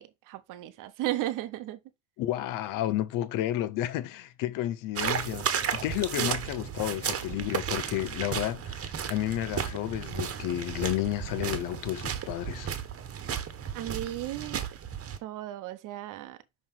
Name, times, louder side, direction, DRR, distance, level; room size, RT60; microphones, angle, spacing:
voice 1, 0.0-1.8 6.2-6.4 13.7-14.7 15.2-16.4, right 14 dB, 80° right, 0.8 m, -35 dB
voice 2, 2.2-12.7, left 13 dB, 80° left, 0.7 m, -31 dB
sound 1, 5.0-15.2, right 8 dB, 45° right, 1.1 m, -34 dB
5.7 x 3.1 x 5.5 m
supercardioid pair, 80°, 32 cm